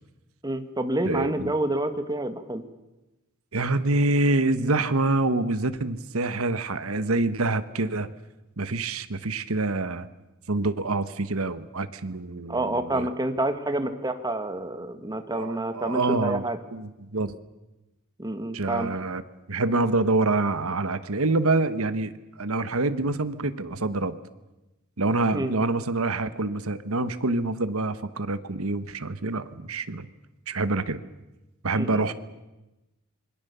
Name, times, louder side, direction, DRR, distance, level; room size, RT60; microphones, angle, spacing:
voice 1, 0.4-2.6 12.5-16.6 18.2-18.9 25.3-25.5 31.8-32.1, right 1 dB, 20° right, 8 dB, 1.8 m, -28 dB
voice 2, 1.1-1.5 3.5-8.1 8.6-10.1 10.5-13.1 15.3-16.4 16.7-17.4 18.5-19.2 19.5-22.1 22.4-24.2 25.0-30.1 30.5-31.0 31.6-32.1, right 2 dB, 90° right, 12 dB, 1.3 m, -26 dB
26.5 x 22.0 x 6.9 m, 1.0 s
head